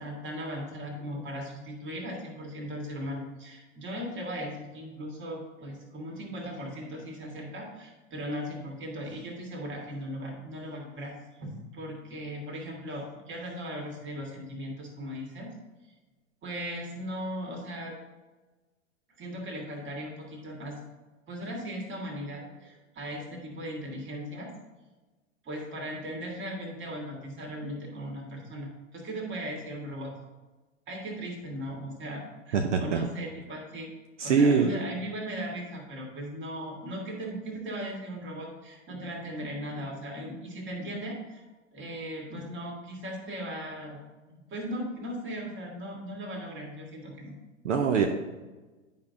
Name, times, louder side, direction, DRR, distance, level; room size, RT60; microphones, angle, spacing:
voice 1, 0.0-15.5 15.8-15.9 16.4-17.9 19.2-20.8 21.3-24.5 25.4-30.1 30.9-33.9 34.2-41.4 41.7-44.0 44.2-47.3, equal, 30° right, 0 dB, 2.0 m, -38 dB
voice 2, 32.5-33.0 34.2-34.7 47.6-48.1, right 5 dB, 70° right, 4 dB, 0.7 m, -23 dB
9.4 x 5.2 x 2.7 m, 1.2 s
figure-of-eight pair, 100°, 37 cm